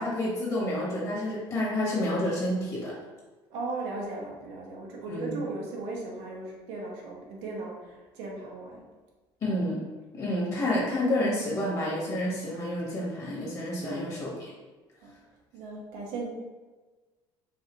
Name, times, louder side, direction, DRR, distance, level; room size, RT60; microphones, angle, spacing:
voice 1, 0.0-2.9 5.1-5.3 9.4-9.8 10.1-14.3, left 1 dB, 35° left, -5 dB, 1.4 m, -29 dB
voice 2, 3.5-8.8 13.8-14.0 15.0-15.1 15.5-16.3, right 3 dB, 85° right, -1 dB, 1.0 m, -37 dB
4.6 x 2.7 x 3.1 m, 1.3 s
cardioid pair, 135°, 10 cm